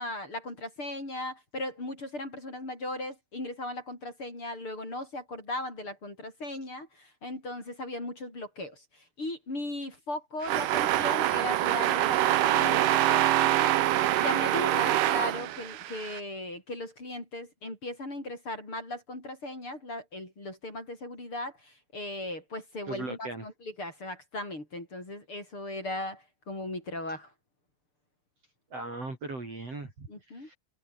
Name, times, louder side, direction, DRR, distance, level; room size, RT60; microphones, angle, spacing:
voice 1, 0.0-27.3 30.1-30.5, left 1 dB, 30° left, 8.1 m, -37 dB
sound 1, 10.4-16.2, right 14 dB, 70° right, 2.1 m, -25 dB
voice 2, 22.9-23.5 28.7-30.6, right 2 dB, 35° right, 6.2 m, -38 dB
omnidirectional pair, 5.2 m